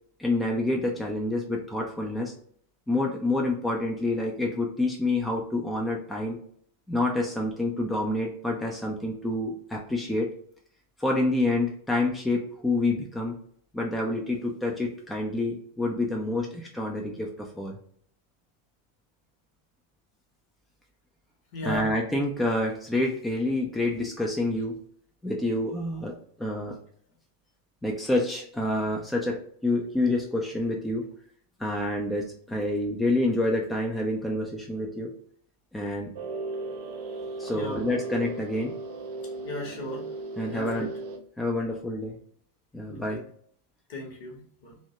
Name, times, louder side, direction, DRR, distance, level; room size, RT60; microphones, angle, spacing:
voice 1, 0.2-2.3 2.9-6.4 6.9-10.3 11.0-13.4 13.7-17.8 21.6-24.8 25.2-26.8 27.8-31.0 31.6-35.1 35.7-36.1 37.4-38.7 40.4-40.9 41.4-42.2 42.7-43.2, left 2 dB, 5° left, -1 dB, 0.4 m, -28 dB
voice 2, 21.5-21.9 37.5-37.8 39.4-40.0 40.5-40.9 42.8-43.2 43.9-44.8, left 1 dB, 50° left, 1 dB, 0.9 m, -37 dB
sound 1, 36.1-41.2, right 3 dB, 50° right, 0.5 m, -36 dB
2.7 x 2.2 x 2.7 m, 0.62 s
figure-of-eight pair, 90°, 0 cm